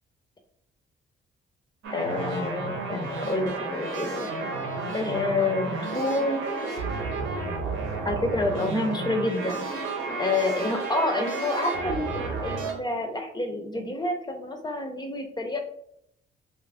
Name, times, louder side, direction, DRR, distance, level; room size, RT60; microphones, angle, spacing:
sound 1, 1.8-12.7, right 3 dB, 80° right, 0.8 m, -32 dB
voice 1, 1.9-4.3 4.9-6.4 8.0-9.6 10.2-15.6, left 2 dB, 20° left, 4 dB, 0.5 m, -28 dB
2.7 x 2.4 x 3.4 m, 0.73 s
cardioid pair, 90°, 20 cm